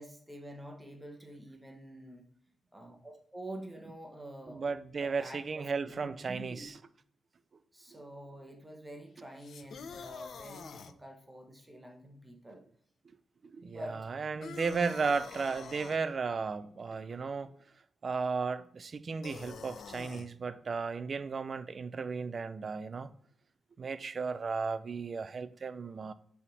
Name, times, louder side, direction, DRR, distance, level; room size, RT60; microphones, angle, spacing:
voice 1, 0.0-2.3 2.7-4.6 5.0-6.7 7.7-12.6 13.7-14.1, right 1 dB, 10° right, 0.9 m, -47 dB
voice 2, 4.5-6.7 13.5-17.5 18.0-23.1 23.8-26.1, right 4 dB, 35° right, 0.4 m, -35 dB
sound 1, 9.4-10.9 14.4-16.0 19.2-20.3, left 6 dB, 55° left, 0.4 m, -46 dB
7.2 x 3.5 x 4.0 m
wide cardioid pair, 180°, 0 cm